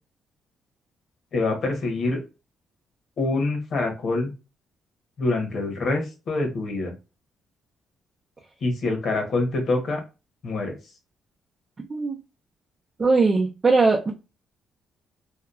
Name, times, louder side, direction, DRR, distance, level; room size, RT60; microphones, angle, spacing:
voice 1, 1.3-2.2 3.2-4.3 5.2-6.9 8.6-10.0 10.4-10.7, left 2 dB, 60° left, 1.0 m, -25 dB
voice 2, 13.0-14.1, right 3 dB, 35° right, 0.5 m, -20 dB
2.8 x 2.3 x 2.4 m
cardioid pair, 90°, 0 cm